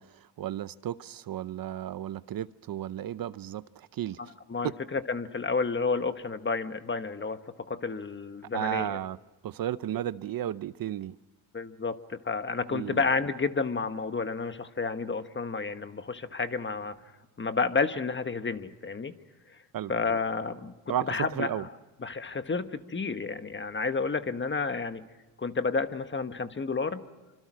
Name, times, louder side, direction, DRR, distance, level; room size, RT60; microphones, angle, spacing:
voice 1, 0.0-4.2 8.5-9.2 9.4-11.2 12.7-13.0 19.7-19.9 20.9-21.7, right 11 dB, 50° right, 0.7 m, -34 dB
voice 2, 4.5-9.0 11.5-17.0 17.4-19.1 19.5-19.6 19.9-20.7 21.1-21.7 22.0-25.1 25.4-27.0, left 4 dB, 25° left, 1.4 m, -31 dB
26.0 x 25.5 x 6.3 m
cardioid pair, 95°, 45 cm